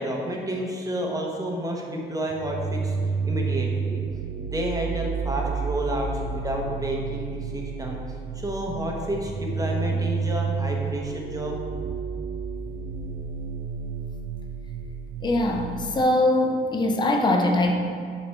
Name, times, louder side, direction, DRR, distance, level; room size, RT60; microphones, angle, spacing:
voice 1, 0.0-3.0 3.2-8.0 8.3-11.6, right 1 dB, 15° right, -1 dB, 1.0 m, -30 dB
sound 1, 2.3-16.0, right 5 dB, 80° right, 0.5 m, -30 dB
voice 2, 15.2-17.7, left 1 dB, 20° left, 2 dB, 0.6 m, -22 dB
5.5 x 4.2 x 4.5 m, 2.2 s
cardioid pair, 90°, 20 cm